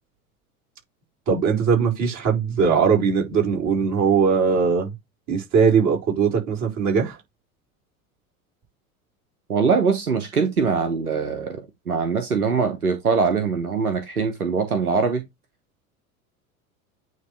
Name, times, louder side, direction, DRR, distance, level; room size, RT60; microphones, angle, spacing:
voice 1, 1.3-4.9 5.3-7.2, right 6 dB, 40° right, 4.4 m, -20 dB
voice 2, 9.5-15.2, right 5 dB, 85° right, 1.1 m, -22 dB
9.4 x 3.2 x 3.2 m
figure-of-eight pair, 75°, 43 cm